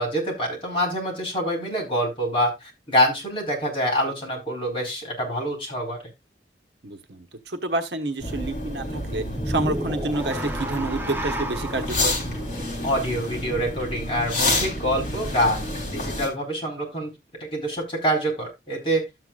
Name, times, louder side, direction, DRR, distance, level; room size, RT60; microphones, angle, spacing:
voice 1, 0.0-6.0 12.8-17.1 17.5-19.0, equal, 30° left, 4.4 m, -26 dB
voice 2, 6.8-12.1, right 2 dB, 70° right, 1.1 m, -29 dB
sound 1, 8.2-16.3, left 1 dB, 45° left, 3.4 m, -29 dB
sound 2, 9.3-13.6, right 1 dB, 10° right, 0.8 m, -33 dB
12.5 x 7.9 x 2.4 m
head